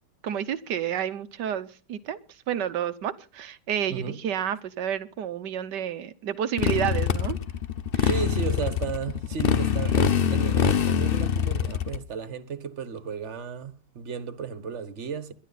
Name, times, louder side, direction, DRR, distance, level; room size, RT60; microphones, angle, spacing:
voice 1, 0.2-2.2 2.5-7.4 7.9-8.1, right 9 dB, 85° right, 1.6 m, -30 dB
voice 2, 3.9-4.2 8.0-15.3, right 6 dB, 45° right, 1.7 m, -34 dB
Motorcycle, 6.6-12.0, left 7 dB, 45° left, 0.8 m, -24 dB
22.0 x 11.0 x 4.1 m
omnidirectional pair, 1.8 m